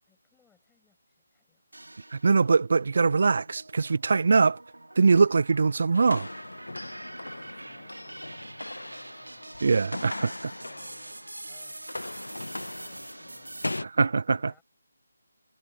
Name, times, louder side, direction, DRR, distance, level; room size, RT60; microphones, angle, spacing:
voice 1, 0.0-1.6 7.2-9.9 10.4-14.6, left 7 dB, 5° left, 6.9 m, -67 dB
sound 1, 1.7-2.6 3.1-13.8, right 1 dB, 85° right, 1.6 m, -45 dB
voice 2, 2.1-4.6 5.0-6.3 9.6-10.5 13.8-14.5, right 4 dB, 55° right, 0.3 m, -22 dB
sound 2, 5.9-11.4 11.7-13.8, left 2 dB, 80° left, 0.6 m, -39 dB
figure-of-eight pair, 155°, 0 cm